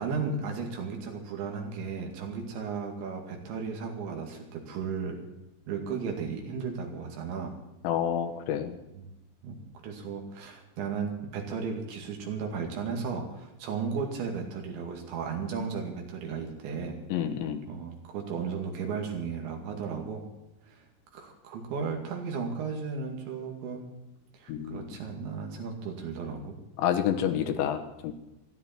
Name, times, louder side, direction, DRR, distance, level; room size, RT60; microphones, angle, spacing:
voice 1, 0.0-5.2 5.7-7.6 9.0-9.1 9.4-9.6 9.8-17.0 17.7-20.2 20.7-20.8 21.1-23.9 24.3-26.6, right 5 dB, 85° right, 2 dB, 4.6 m, -35 dB
voice 2, 7.8-8.8 17.1-17.6 24.5-24.9 26.8-28.1, left 9 dB, 85° left, 6 dB, 3.6 m, -29 dB
26.0 x 11.0 x 4.6 m, 0.95 s
omnidirectional pair, 5.1 m